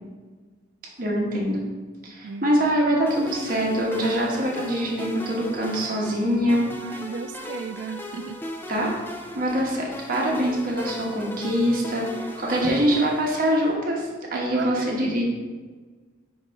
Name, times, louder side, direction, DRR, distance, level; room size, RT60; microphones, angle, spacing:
voice 1, 1.0-1.6 2.0-6.7 8.7-8.9 9.3-15.2, equal, 50° right, -2 dB, 1.1 m, -24 dB
sound 1, 3.1-13.7, left 1 dB, 10° left, 0.4 m, -38 dB
voice 2, 6.8-8.4 14.3-15.2, right 6 dB, 75° right, 11 dB, 0.3 m, -35 dB
4.8 x 4.0 x 5.4 m, 1.4 s
head